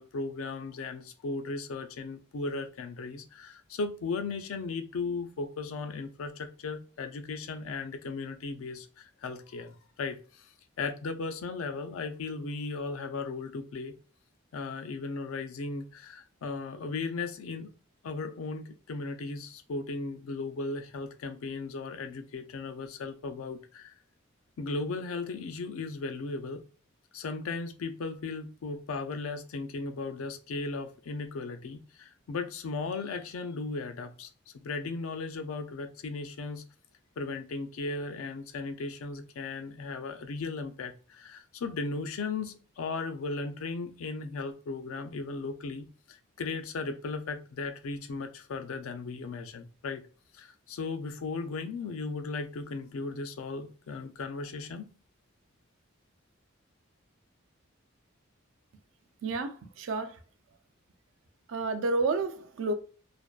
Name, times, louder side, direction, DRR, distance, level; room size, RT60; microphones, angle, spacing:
voice 1, 0.0-10.5 10.8-13.9 14.5-17.7 18.0-23.9 24.6-26.7 27.1-34.3 34.5-36.6 37.2-50.0 50.3-54.9, left 3 dB, 85° left, 0.4 m, -36 dB
voice 2, 59.2-60.2 61.5-62.7, right 3 dB, 70° right, 0.4 m, -30 dB
2.5 x 2.2 x 2.3 m
head